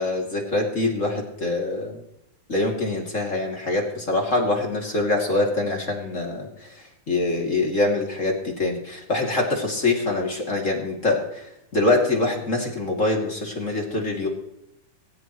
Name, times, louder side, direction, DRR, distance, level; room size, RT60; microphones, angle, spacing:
voice 1, 0.0-2.0 2.5-14.3, left 2 dB, 25° left, 0 dB, 2.4 m, -24 dB
18.0 x 17.0 x 3.1 m, 0.81 s
omnidirectional pair, 4.1 m